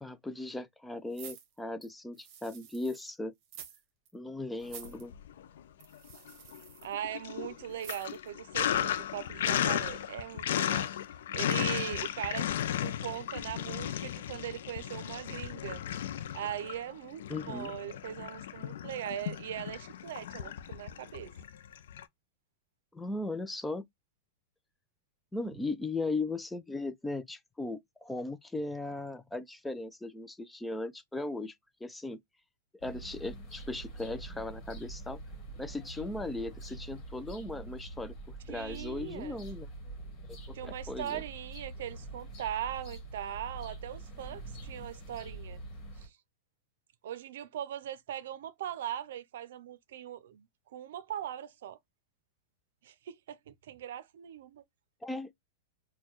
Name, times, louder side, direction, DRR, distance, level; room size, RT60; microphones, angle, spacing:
voice 1, 0.0-3.3 4.1-5.1 17.3-17.7 22.9-23.8 25.3-31.5 31.8-32.2 32.8-35.2 35.6-39.7 40.5-41.2 55.0-55.3, left 2 dB, 5° left, 0.3 m, -37 dB
sound 1, 1.1-3.1 3.4-3.8 4.1-4.2 4.6-5.0 5.8-6.9 7.8-8.3 8.7-8.8, right 9 dB, 40° right, 1.0 m, -49 dB
Sink (filling or washing), 4.7-5.6 5.9-22.0, left 10 dB, 75° left, 0.4 m, -35 dB
voice 2, 6.8-10.9 11.3-12.5 12.8-15.8 16.3-21.3 38.5-39.4 40.5-45.6 46.0-46.2 47.0-51.8 52.8-54.6, right 10 dB, 70° right, 0.5 m, -40 dB
sound 2, 32.8-46.1, right 2 dB, 30° left, 1.4 m, -45 dB
4.3 x 2.2 x 3.0 m
supercardioid pair, 150°, 0 cm